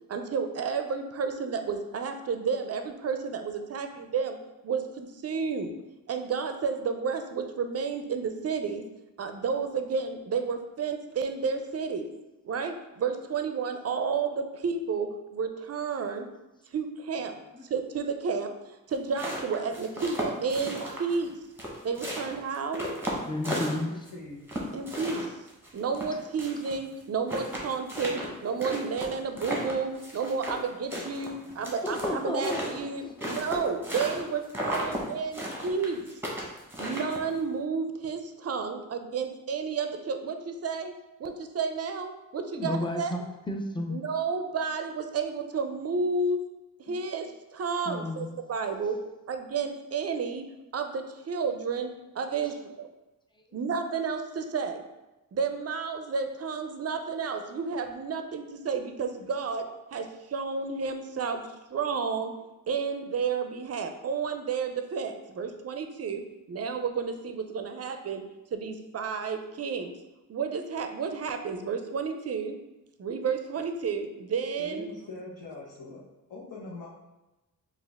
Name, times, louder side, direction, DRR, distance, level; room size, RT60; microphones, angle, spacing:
voice 1, 0.1-4.4 4.6-5.7 6.1-8.8 9.2-12.1 12.4-16.3 16.7-17.3 17.7-21.4 21.8-22.9 24.7-25.3 25.7-36.0 36.8-40.9 41.2-43.1 43.9-46.4 46.9-49.0 49.3-50.4 50.7-52.9 53.5-54.8 55.3-59.6 59.9-62.3 62.7-66.2 66.5-68.2 68.5-69.9 70.3-72.6 73.0-74.9, right 5 dB, 45° right, 6 dB, 0.4 m, -31 dB
sound 1, 18.9-21.3 21.6-24.1 24.5-26.7 27.0-27.1 27.3-30.6 30.9-34.2 34.5-35.0 35.3-37.4, equal, 5° right, 0.9 m, -34 dB
voice 2, 23.2-23.9 31.8-33.4 42.5-43.2 43.5-44.0 46.9-47.0 47.8-48.3, left 1 dB, 15° left, 3 dB, 0.4 m, -32 dB
voice 3, 23.8-24.4 74.6-76.0 76.3-76.9, left 2 dB, 65° left, -7 dB, 1.0 m, -42 dB
4.4 x 2.4 x 3.4 m, 1.0 s
wide cardioid pair, 105°, 35 cm